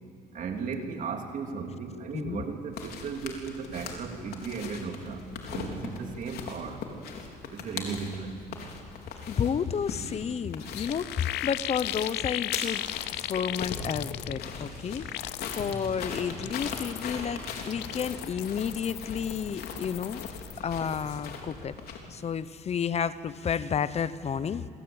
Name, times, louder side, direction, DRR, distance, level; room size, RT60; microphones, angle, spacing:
voice 1, 0.3-5.2 5.5-6.8 7.5-8.4, right 5 dB, 50° right, 3 dB, 3.4 m, -36 dB
voice 2, 2.1-2.4 9.3-12.8 13.1-20.2 20.6-21.8 22.1-24.6, left 7 dB, 40° left, 15 dB, 1.0 m, -31 dB
sound 1, 2.7-22.0, left 5 dB, 70° left, 4.2 m, -40 dB
sound 2, 10.3-10.4 10.6-14.6 14.9-15.8 16.2-17.2 17.6-20.6 20.9-21.2, left 16 dB, 85° left, 0.7 m, -37 dB
Clock, 14.4-14.6 15.2-15.3 15.9-16.0 16.6-16.8 17.4-17.5 18.1-18.3 18.9-19.0 19.6-19.7, left 1 dB, 5° left, 5.0 m, -56 dB
26.5 x 25.0 x 8.9 m, 2.6 s
cardioid pair, 110°, 17 cm